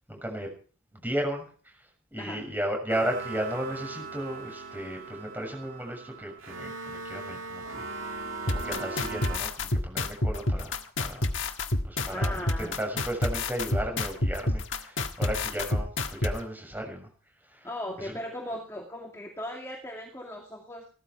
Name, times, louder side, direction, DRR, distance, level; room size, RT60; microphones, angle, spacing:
voice 1, 0.1-0.5 0.9-1.8 2.1-7.9 8.4-11.3 11.8-17.1 17.5-17.7 18.0-18.2, equal, 10° right, 2 dB, 6.9 m, -34 dB
sound 1, 2.9-9.4, right 3 dB, 65° right, 2.4 m, -39 dB
sound 2, 8.5-16.3, left 2 dB, 60° left, 1.6 m, -28 dB
voice 2, 12.0-12.8 17.6-20.8, left 1 dB, 15° left, 0 dB, 2.3 m, -38 dB
17.5 x 14.0 x 4.7 m, 0.41 s
head